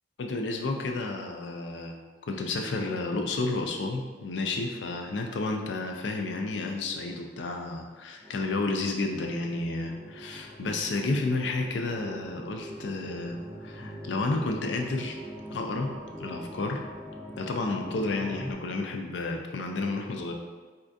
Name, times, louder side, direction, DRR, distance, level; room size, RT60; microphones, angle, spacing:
voice 1, 0.2-2.0 2.3-15.2 15.5-15.9 16.2-16.8 17.4-20.3, left 3 dB, 90° left, 3 dB, 0.4 m, -31 dB
sound 1, 8.2-18.5, equal, ahead, 0.4 m, -42 dB
4.2 x 2.4 x 2.5 m, 1.3 s
head